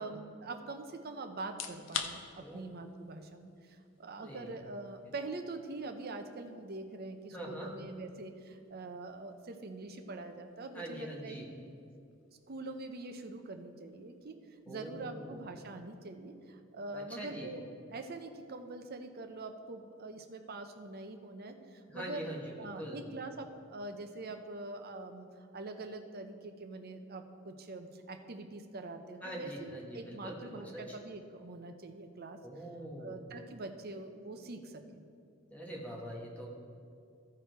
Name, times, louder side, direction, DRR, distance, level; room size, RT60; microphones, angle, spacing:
voice 1, 0.0-11.4 12.5-14.4 14.7-17.6 17.9-22.3 22.6-32.4 33.0-35.0 35.7-35.9, right 2 dB, 50° right, 6 dB, 0.7 m, -44 dB
sound 1, 1.4-16.3, left 7 dB, 65° left, 0.6 m, -50 dB
voice 2, 4.2-4.5 7.3-7.7 10.7-11.5 14.6-15.4 16.9-17.5 21.9-23.0 29.2-31.0 32.4-33.2 35.5-36.5, right 1 dB, 5° left, -2 dB, 1.2 m, -43 dB
14.5 x 4.9 x 4.6 m, 2.5 s
head